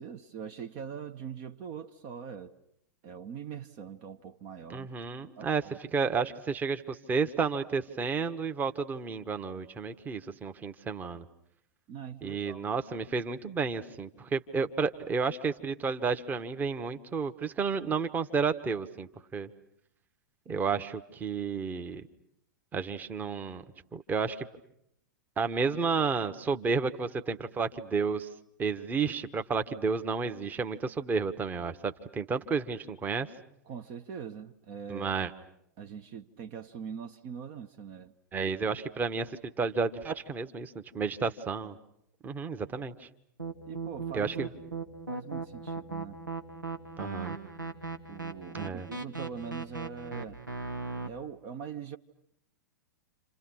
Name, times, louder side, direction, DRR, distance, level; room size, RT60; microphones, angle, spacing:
voice 1, 0.0-2.6 3.0-4.9 5.4-5.8 11.9-12.7 33.7-35.1 35.8-38.1 43.7-44.4 45.1-46.2 48.1-50.4 51.1-52.0, right 7 dB, 40° right, 1.1 m, -42 dB
voice 2, 4.7-5.6 5.9-11.3 12.2-19.5 20.5-22.0 22.7-23.6 23.9-24.5 25.4-28.3 28.6-33.3 34.9-35.3 38.3-41.8 42.2-43.1 44.1-44.5 47.0-47.4 48.5-48.9, right 5 dB, 15° right, 1.3 m, -31 dB
sound 1, 43.4-51.1, right 4 dB, 85° right, 2.1 m, -38 dB
30.0 x 27.5 x 6.4 m
figure-of-eight pair, 100°, 10 cm